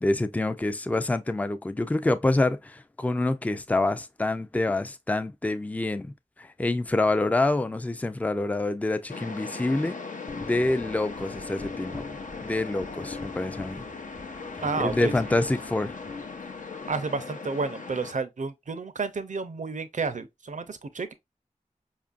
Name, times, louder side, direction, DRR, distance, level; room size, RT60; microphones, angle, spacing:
voice 1, 0.0-6.1 6.4-10.0 10.4-12.0 12.4-13.8 14.8-15.9, left 2 dB, 10° left, 0.3 m, -26 dB
sound 1, 9.1-18.1, left 4 dB, 75° left, 0.6 m, -39 dB
sound 2, 10.3-16.9, left 3 dB, 30° left, 0.9 m, -42 dB
voice 2, 14.6-15.3 16.9-21.1, right 4 dB, 65° right, 0.5 m, -31 dB
5.0 x 2.5 x 2.4 m
wide cardioid pair, 65°, 13 cm